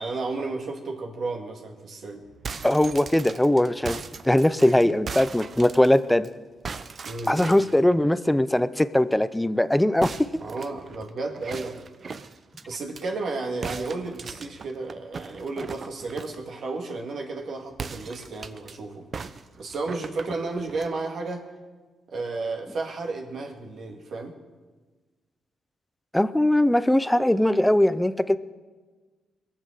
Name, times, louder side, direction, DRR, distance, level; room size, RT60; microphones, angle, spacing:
voice 1, 0.0-2.2 4.6-4.7 7.0-7.5 10.4-11.8 12.7-19.1 19.6-21.5 22.1-24.3, right 3 dB, 60° right, 2 dB, 2.0 m, -33 dB
sound 1, 2.3-6.3 6.6-7.8 10.0-13.0 13.6-16.4 17.7-18.7 19.1-20.9, right 5 dB, 45° right, 0.7 m, -38 dB
voice 2, 2.6-4.0 4.2-6.3 7.3-10.3 26.1-28.4, left 1 dB, 5° left, 15 dB, 0.5 m, -20 dB
22.0 x 7.5 x 6.5 m, 1.3 s
cardioid pair, 95°, 0 cm